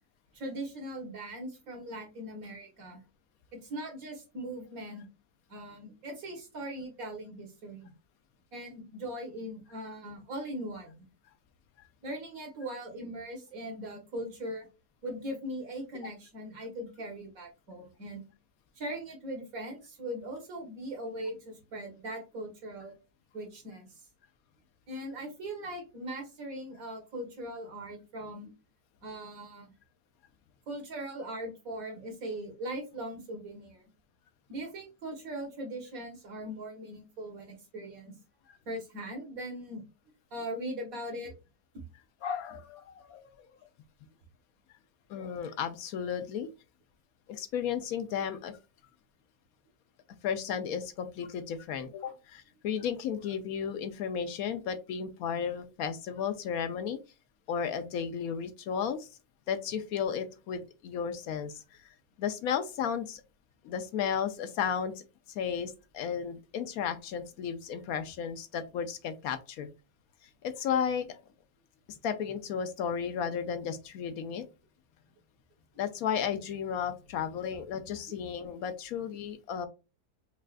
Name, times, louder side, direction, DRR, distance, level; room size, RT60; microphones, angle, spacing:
voice 1, 0.3-3.0 3.5-5.1 5.5-7.9 8.5-11.0 12.0-14.7 15.0-18.2 18.8-23.0 23.3-24.0 24.9-28.5 29.0-29.7 30.7-33.8 34.5-38.2 38.7-39.8 40.3-41.3 52.0-52.1 78.1-78.2, right 1 dB, 60° right, 2 dB, 1.7 m, -40 dB
voice 2, 42.2-43.5 45.1-46.5 47.3-48.5 50.2-57.0 57.5-59.1 59.5-61.8 62.2-63.2 63.6-69.7 70.4-71.2 71.9-74.5 75.8-79.7, left 7 dB, 70° left, 10 dB, 1.0 m, -34 dB
5.4 x 2.4 x 2.4 m, 0.29 s
omnidirectional pair, 1.7 m